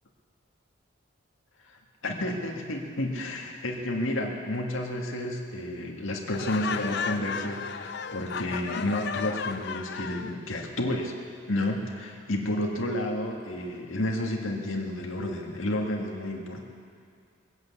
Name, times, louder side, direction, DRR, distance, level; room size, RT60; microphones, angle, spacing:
voice 1, 2.0-11.1 11.5-16.6, left 1 dB, 80° left, 1 dB, 1.9 m, -31 dB
Laughter, 6.3-10.4, left 6 dB, 55° left, 0.6 m, -34 dB
20.5 x 8.1 x 8.2 m, 2.2 s
head